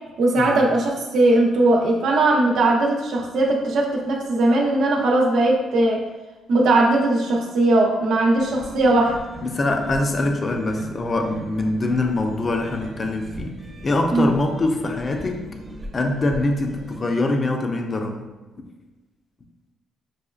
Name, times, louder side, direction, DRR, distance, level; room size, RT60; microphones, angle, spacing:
voice 1, 0.2-6.0 6.5-9.2 14.1-14.3, right 2 dB, 75° right, -1 dB, 0.8 m, -19 dB
sound 1, 8.4-17.0, equal, 25° right, 0.8 m, -39 dB
voice 2, 9.4-15.5 15.9-18.2, left 2 dB, 35° left, 3 dB, 0.5 m, -24 dB
6.2 x 2.3 x 2.4 m, 1.1 s
cardioid pair, 90°, 0 cm